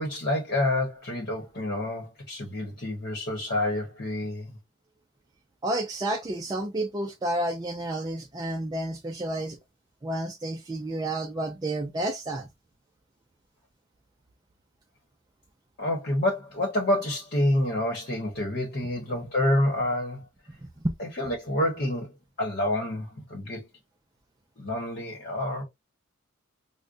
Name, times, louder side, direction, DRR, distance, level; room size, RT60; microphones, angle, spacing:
voice 1, 0.0-4.6 15.8-20.2 21.0-22.1 22.4-23.7 24.6-25.6, left 1 dB, 50° left, 1.0 m, -28 dB
voice 2, 5.6-9.6 10.0-12.5, right 1 dB, 20° right, 0.4 m, -30 dB
4.9 x 2.1 x 2.4 m
head